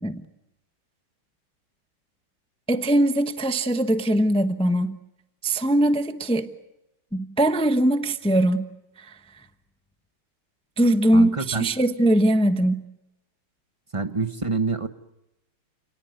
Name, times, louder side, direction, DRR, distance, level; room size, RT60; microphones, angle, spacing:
voice 1, 2.7-5.0 5.4-6.5 7.1-8.7 9.0-9.1 10.8-12.8, right 1 dB, 10° left, 0.3 m, -21 dB
voice 2, 11.1-11.7 13.9-14.9, right 4 dB, 25° right, 0.7 m, -26 dB
29.0 x 18.5 x 9.5 m
omnidirectional pair, 2.3 m